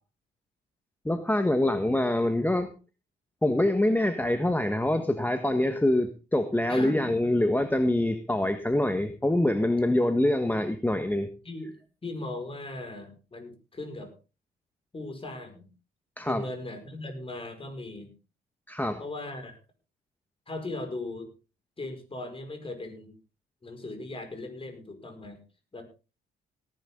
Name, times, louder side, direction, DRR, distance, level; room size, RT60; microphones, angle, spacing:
voice 1, 1.0-2.7 3.4-11.3 16.2-16.4 18.7-19.0, left 1 dB, 10° left, 8 dB, 1.3 m, -25 dB
voice 2, 6.7-7.1 11.4-14.1 14.9-15.7 16.2-18.1 19.0-19.6 20.5-21.3 21.8-23.2 23.6-25.4 25.7-25.8, left 2 dB, 25° left, 6 dB, 5.3 m, -38 dB
18.0 x 11.0 x 3.7 m, 0.32 s
cardioid pair, 90°, 20 cm